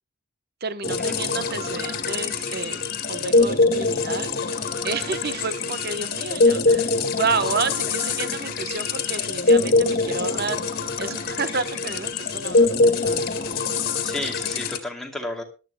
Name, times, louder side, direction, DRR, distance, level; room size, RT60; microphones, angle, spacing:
voice 1, 0.6-2.8 3.1-13.3, right 4 dB, 50° right, 11 dB, 1.0 m, -30 dB
sound 1, 0.8-14.8, left 3 dB, 45° left, 1.9 m, -23 dB
voice 2, 14.0-15.4, left 1 dB, ahead, 1 dB, 2.5 m, -33 dB
22.5 x 11.5 x 2.2 m, 0.31 s
head